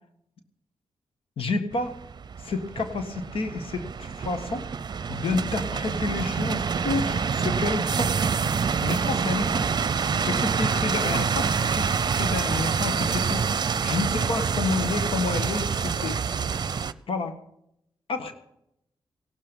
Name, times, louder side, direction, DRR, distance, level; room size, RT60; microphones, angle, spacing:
voice 1, 1.4-2.0 2.4-4.6 5.1-8.1 8.8-9.7 10.2-13.4 13.8-16.2 17.1-17.3 18.1-18.3, left 3 dB, 70° left, 8 dB, 1.6 m, -29 dB
sound 1, 1.7-16.9, right 6 dB, 50° right, 0.7 m, -26 dB
16.5 x 12.5 x 5.4 m, 0.78 s
cardioid pair, 75°, 10 cm